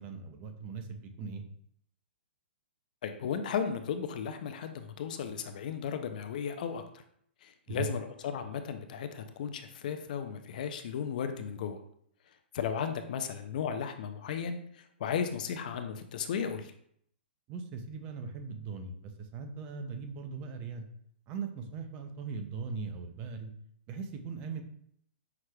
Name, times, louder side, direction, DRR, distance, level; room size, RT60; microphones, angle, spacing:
voice 1, 0.0-1.4 7.7-7.9 17.5-20.9 21.3-23.5 23.9-24.6, right 5 dB, 20° right, 6 dB, 0.4 m, -39 dB
voice 2, 3.0-6.8 7.4-11.8 12.5-16.7, left 7 dB, 45° left, 8 dB, 0.4 m, -35 dB
5.7 x 3.2 x 2.2 m, 0.68 s
hypercardioid pair, 165°, 6 cm